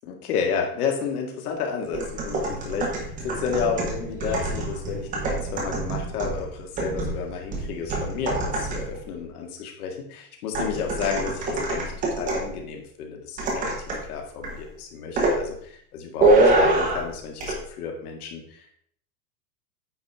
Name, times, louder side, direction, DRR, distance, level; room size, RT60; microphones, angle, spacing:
voice 1, 0.0-13.7 14.1-18.8, left 6 dB, 65° left, 2 dB, 2.0 m, -31 dB
sound 1, 1.9-9.0 10.5-12.6 13.4-14.1 14.4-14.7 15.2-15.4 16.2-17.1 17.4-17.6, right 2 dB, 15° right, 1.1 m, -25 dB
9.1 x 5.0 x 3.6 m, 0.64 s
supercardioid pair, 175°, 48 cm